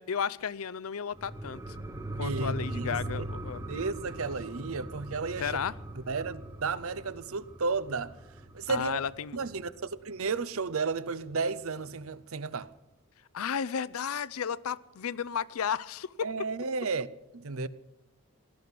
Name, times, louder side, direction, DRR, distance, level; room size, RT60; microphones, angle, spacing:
voice 1, 0.0-1.8 2.2-3.8 5.4-5.7 8.7-9.4 13.3-16.3, left 7 dB, 80° left, 0.5 m, -33 dB
sound 1, 1.1-10.2 10.6-10.7, right 1 dB, 15° right, 0.9 m, -40 dB
voice 2, 2.2-3.3 3.7-5.6 6.1-8.1 8.5-9.0 9.3-12.7 16.2-17.1 17.3-17.7, right 4 dB, 75° right, 0.7 m, -33 dB
18.0 x 12.5 x 6.0 m
head